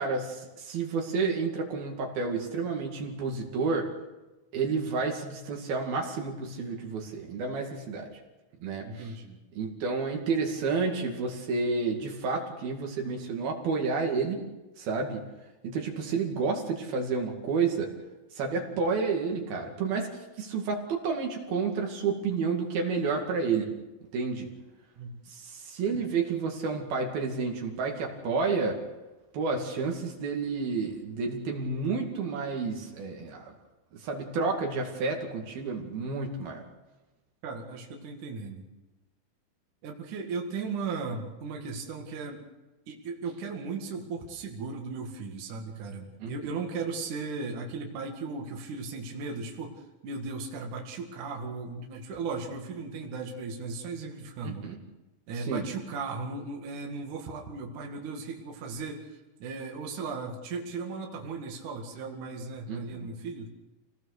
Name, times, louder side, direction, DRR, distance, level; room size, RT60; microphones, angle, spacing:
voice 1, 0.0-3.9 4.5-8.1 8.6-9.1 9.6-14.4 14.8-15.2 15.6-17.9 18.3-23.7 24.1-24.5 25.3-28.8 29.3-33.5 33.9-36.6 46.2-46.3 54.4-54.8 55.4-55.7 62.7-62.8, right 4 dB, 75° right, 1 dB, 4.2 m, -30 dB
voice 2, 8.8-9.4 25.0-25.2 37.4-38.7 39.8-42.4 42.9-54.7 55.3-63.5, right 4 dB, 60° right, 1 dB, 3.4 m, -36 dB
27.5 x 18.5 x 6.6 m, 1.1 s
omnidirectional pair, 4.4 m